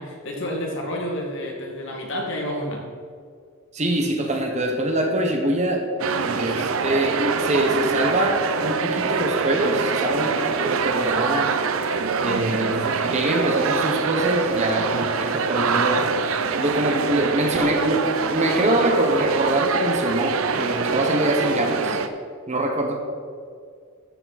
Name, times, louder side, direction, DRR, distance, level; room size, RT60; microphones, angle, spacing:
voice 1, 0.0-2.8 6.6-6.7 15.2-15.5 16.9-17.0, equal, 60° left, -1 dB, 2.2 m, -30 dB
voice 2, 3.7-5.9 6.2-11.5 12.2-16.0 16.6-22.0 22.5-23.0, right 1 dB, 30° right, 2 dB, 1.2 m, -24 dB
sound 1, 6.0-22.1, right 5 dB, 70° right, 0.6 m, -24 dB
14.0 x 7.0 x 4.2 m, 2.2 s
head